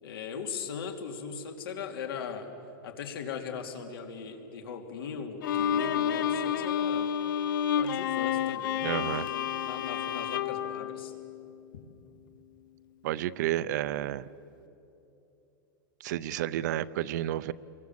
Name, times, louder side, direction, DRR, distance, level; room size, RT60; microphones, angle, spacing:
voice 1, 0.0-2.5 2.8-7.1 7.8-11.1, left 6 dB, 85° left, 4 dB, 2.9 m, -39 dB
Bowed string instrument, 5.4-11.7, left 9 dB, 65° left, 0.8 m, -30 dB
voice 2, 8.8-9.3 13.0-14.3 16.0-17.5, right 13 dB, 50° right, 16 dB, 0.6 m, -31 dB
27.5 x 23.0 x 7.6 m, 2.8 s
supercardioid pair, 175°, 12 cm